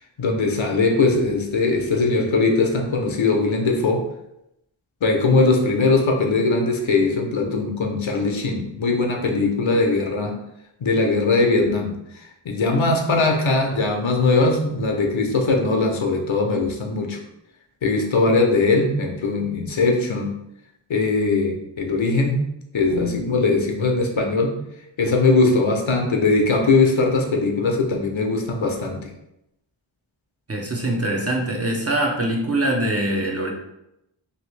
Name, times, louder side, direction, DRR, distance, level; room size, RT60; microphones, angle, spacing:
voice 1, 0.2-4.1 5.0-10.4 10.8-11.9 12.4-17.2 17.8-20.4 20.9-22.4 22.7-24.5 25.0-29.1, left 3 dB, 70° left, 2 dB, 0.7 m, -20 dB
voice 2, 30.5-33.5, right 1 dB, 30° right, -1 dB, 0.7 m, -23 dB
2.9 x 2.6 x 3.2 m, 0.83 s
wide cardioid pair, 45°, 49 cm